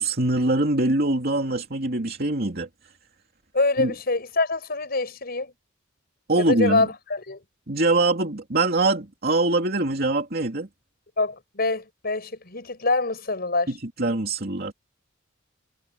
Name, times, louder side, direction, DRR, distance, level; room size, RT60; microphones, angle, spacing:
voice 1, 0.0-2.7 3.8-3.9 6.3-6.9 7.7-10.7 13.7-14.7, right 2 dB, 50° right, 2.7 m, -23 dB
voice 2, 3.5-5.5 6.5-7.4 11.2-13.7, left 3 dB, 50° left, 6.4 m, -25 dB
head